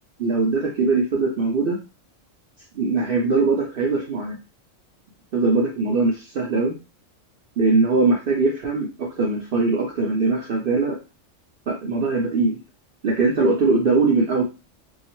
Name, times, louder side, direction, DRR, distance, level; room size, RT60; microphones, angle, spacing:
voice 1, 0.2-1.8 2.7-4.4 5.3-6.8 7.6-11.0 11.7-12.6 13.0-14.4, right 3 dB, 60° right, -1 dB, 0.6 m, -21 dB
2.7 x 2.0 x 2.9 m, 0.30 s
omnidirectional pair, 1.3 m